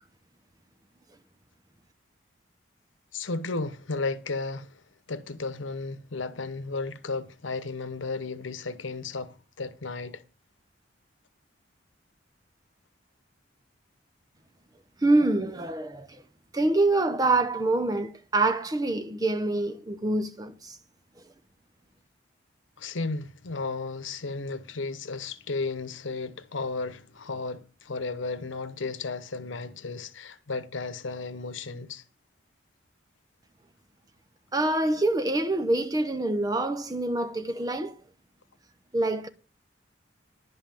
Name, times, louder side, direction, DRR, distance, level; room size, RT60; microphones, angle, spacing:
voice 1, 3.1-4.8 5.1-10.2 22.8-32.0, left 3 dB, 85° left, 0.9 m, -34 dB
voice 2, 15.0-16.1 16.5-20.8 34.5-38.0 38.9-39.3, right 2 dB, 20° right, 0.7 m, -25 dB
11.0 x 5.6 x 7.4 m
head